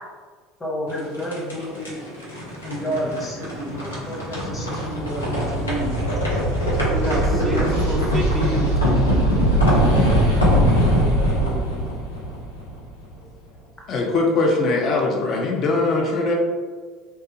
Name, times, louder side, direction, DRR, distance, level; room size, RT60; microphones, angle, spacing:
voice 1, 0.6-2.1 2.6-6.2 7.0-8.1 9.8-10.5 10.8-11.9, equal, 10° left, -4 dB, 0.9 m, -31 dB
sound 1, 0.9-13.0, equal, 80° left, 0.6 m, -21 dB
voice 2, 6.8-7.6 7.9-9.2, right 1 dB, 25° right, 2 dB, 0.4 m, -30 dB
voice 3, 13.9-16.3, left 3 dB, 45° left, 0 dB, 0.5 m, -21 dB
2.7 x 2.3 x 2.8 m, 1.5 s
figure-of-eight pair, 65°, 0 cm